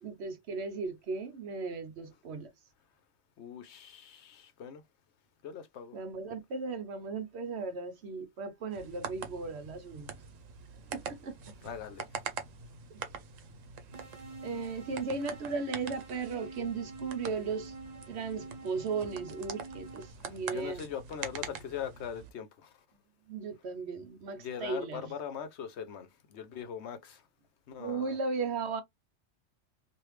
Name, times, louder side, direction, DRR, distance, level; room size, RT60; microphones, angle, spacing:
voice 1, 0.0-2.5 5.9-10.1 10.9-11.5 14.4-17.8 18.1-20.8 23.3-25.1 27.8-28.8, right 4 dB, 65° right, 0.9 m, -36 dB
voice 2, 3.4-4.8 5.4-5.9 11.6-12.1 20.2-22.7 24.3-27.2 27.7-28.2, left 8 dB, 65° left, 0.8 m, -41 dB
sound 1, 8.7-22.3, right 6 dB, 85° right, 1.1 m, -44 dB
sound 2, 13.9-20.1, right 3 dB, 35° right, 1.5 m, -47 dB
3.2 x 2.6 x 3.1 m
omnidirectional pair, 1.3 m